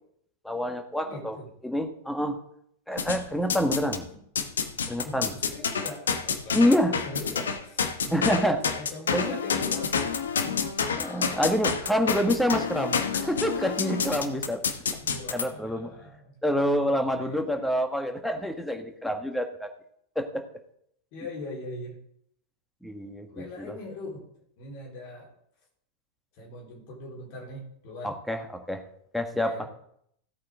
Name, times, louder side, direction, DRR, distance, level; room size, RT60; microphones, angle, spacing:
voice 1, 0.4-1.4 1.6-2.4 2.9-4.1 4.9-5.3 6.5-6.9 8.1-8.6 9.1-9.4 11.0-14.6 15.3-15.9 16.4-19.7 20.1-20.4 22.8-23.7 28.0-28.8 29.1-29.7, equal, ahead, 5 dB, 1.7 m, -27 dB
voice 2, 1.0-1.5 5.0-10.0 10.4-10.7 14.3-14.5 15.0-16.2 17.1-17.6 21.1-22.0 23.3-24.3 24.6-25.3 26.4-28.2 29.3-29.7, left 2 dB, 45° left, -2 dB, 4.1 m, -41 dB
sound 1, 3.0-4.0 4.4-15.4, left 6 dB, 65° left, 1.2 m, -29 dB
16.5 x 8.5 x 3.8 m, 0.71 s
figure-of-eight pair, 90°, 0 cm